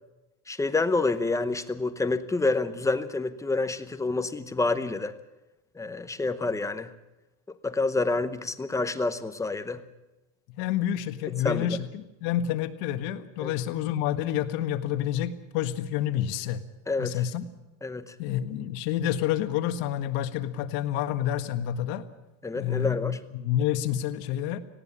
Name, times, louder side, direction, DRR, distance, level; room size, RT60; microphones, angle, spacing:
voice 1, 0.5-5.2 5.8-6.9 7.6-9.8 11.4-11.8 13.4-13.5 16.9-17.2 17.8-18.1 22.4-23.2, left 3 dB, 10° left, 11 dB, 0.8 m, -28 dB
voice 2, 10.6-16.6 17.0-17.4 18.2-22.0 22.5-24.6, left 11 dB, 60° left, 10 dB, 1.7 m, -28 dB
19.0 x 16.5 x 8.6 m, 1.0 s
cardioid pair, 160°, 40 cm